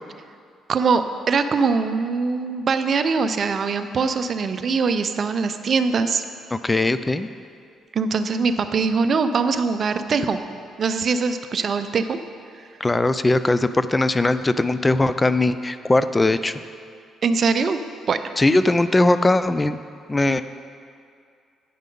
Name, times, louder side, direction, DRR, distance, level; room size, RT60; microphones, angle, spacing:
voice 1, 0.7-6.2 7.9-10.4 10.8-12.2 17.2-17.8 18.1-18.2, right 4 dB, 55° right, 10 dB, 0.5 m, -22 dB
voice 2, 6.5-7.3 12.8-16.6 18.4-19.8 20.1-20.4, left 2 dB, 20° left, 13 dB, 0.3 m, -20 dB
9.3 x 5.5 x 5.3 m, 2.3 s
supercardioid pair, 60°, 0 cm